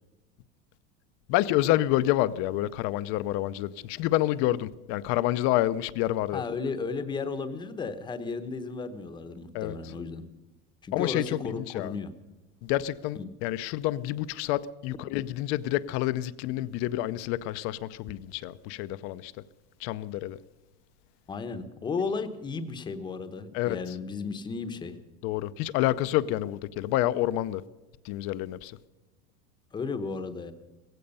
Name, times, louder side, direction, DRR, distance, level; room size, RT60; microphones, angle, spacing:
voice 1, 1.3-6.4 9.5-9.9 10.9-11.9 12.6-19.3 19.8-20.4 23.5-24.0 25.2-27.6 28.0-28.7, left 15 dB, 40° left, 0.6 m, -28 dB
voice 2, 6.3-10.3 10.8-12.1 13.2-13.3 21.3-24.9 29.7-30.5, left 4 dB, 15° left, 0.9 m, -34 dB
17.0 x 16.0 x 5.4 m
supercardioid pair, 165°, 34 cm